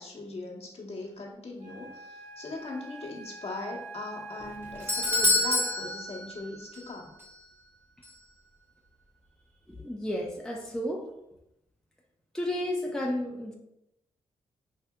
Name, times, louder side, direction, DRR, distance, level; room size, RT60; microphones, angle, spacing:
voice 1, 0.0-7.1, left 2 dB, 50° left, -2 dB, 1.0 m, -39 dB
Wind instrument woodwind instrument, 1.6-6.2, right 2 dB, 70° right, 1.0 m, -45 dB
Doorbell, 4.4-6.9 7.2-7.3 8.0-8.1, left 2 dB, 15° right, 0.9 m, -28 dB
voice 2, 9.7-11.0 12.3-13.5, left 1 dB, 5° left, -1 dB, 0.6 m, -32 dB
5.6 x 2.6 x 2.2 m, 0.83 s
cardioid pair, 65°, 13 cm